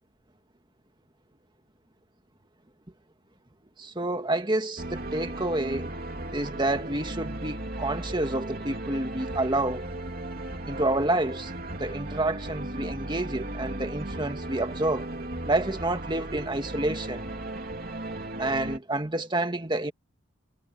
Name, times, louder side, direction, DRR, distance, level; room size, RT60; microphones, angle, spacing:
voice 1, 3.8-5.9 6.3-9.9 10.7-11.5 11.8-15.1 15.5-17.3 18.4-19.9, right 2 dB, 20° right, 1.8 m, -29 dB
sound 1, 4.8-18.8, right 1 dB, 45° right, 2.9 m, -36 dB
head